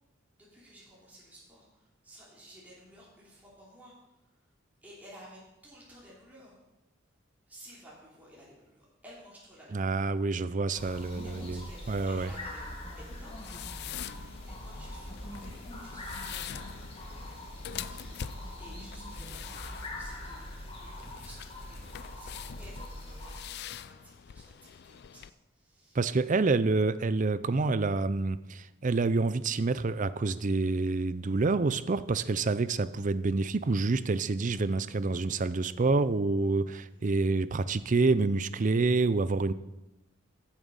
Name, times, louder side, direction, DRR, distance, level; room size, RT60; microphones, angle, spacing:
voice 1, 0.4-3.9 4.8-6.6 7.5-10.0 11.2-13.8 14.4-15.5 15.8-26.0 36.9-37.1, equal, 10° right, -7 dB, 3.2 m, -54 dB
voice 2, 9.7-12.3 25.9-39.5, right 3 dB, 40° right, 15 dB, 0.5 m, -28 dB
sound 1, 10.7-23.4, left 1 dB, 30° left, 2.1 m, -43 dB
sound 2, 13.1-25.3, left 9 dB, 55° left, 0.4 m, -45 dB
15.0 x 7.4 x 5.3 m, 0.98 s
head